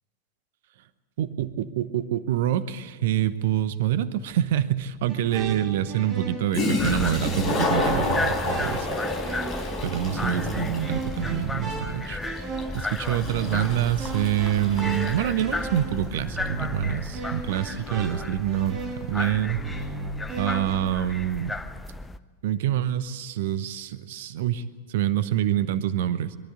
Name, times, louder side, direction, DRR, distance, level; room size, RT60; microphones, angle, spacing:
voice 1, 1.2-8.9 9.8-12.5 12.7-19.6 20.4-21.6 22.4-26.4, right 11 dB, 55° right, 14 dB, 0.9 m, -26 dB
Toilet flush, 4.5-4.6 6.2-6.3 6.5-15.9, left 2 dB, 30° left, 4.7 m, -30 dB
sound 1, 5.1-20.7, right 3 dB, 30° right, 3.2 m, -36 dB
sound 2, 6.8-22.2, left 2 dB, 10° left, 0.7 m, -34 dB
23.0 x 13.0 x 9.7 m, 1.5 s
figure-of-eight pair, 90°, 0 cm